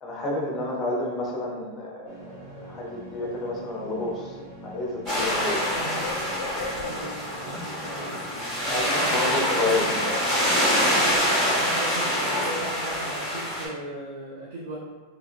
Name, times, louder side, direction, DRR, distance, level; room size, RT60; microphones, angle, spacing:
voice 1, 0.0-5.7 8.6-10.1, left 2 dB, 15° left, -3 dB, 0.6 m, -30 dB
sound 1, 2.1-12.7, right 1 dB, 35° right, 0.9 m, -42 dB
Bird, 4.4-4.5 4.8-7.3 8.3-8.6 8.8-11.3, left 4 dB, 65° left, 0.3 m, -38 dB
sound 2, 5.1-13.7, equal, 20° right, 1.3 m, -25 dB
voice 2, 5.7-8.3 8.6-10.4 10.8-14.8, right 1 dB, 75° right, -5 dB, 0.7 m, -38 dB
3.3 x 2.9 x 2.6 m, 1.4 s
supercardioid pair, 175°, 0 cm